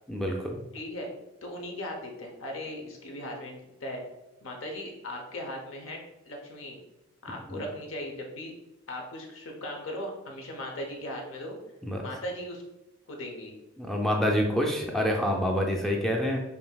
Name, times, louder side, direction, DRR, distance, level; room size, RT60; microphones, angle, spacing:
voice 1, 0.1-0.6 7.5-7.6 11.9-12.0 13.8-16.4, equal, ahead, 0 dB, 0.4 m, -27 dB
voice 2, 0.7-1.1 1.4-4.0 4.4-6.8 7.2-8.5 8.9-11.6 12.0-12.6 13.1-13.5, left 1 dB, 85° left, 1 dB, 0.8 m, -38 dB
5.4 x 2.6 x 2.3 m, 0.95 s
head